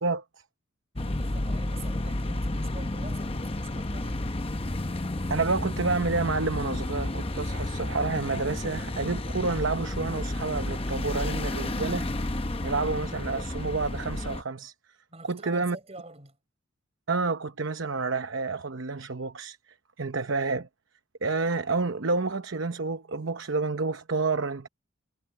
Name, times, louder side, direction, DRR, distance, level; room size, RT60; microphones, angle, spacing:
sound 1, 1.0-14.4, left 1 dB, 25° left, 0.8 m, -31 dB
voice 1, 1.0-4.5 15.1-16.4, right 2 dB, 30° right, 5.7 m, -47 dB
voice 2, 5.3-14.7 15.2-15.8 17.1-19.6 20.0-20.7 21.2-24.7, right 3 dB, 65° right, 0.9 m, -29 dB
head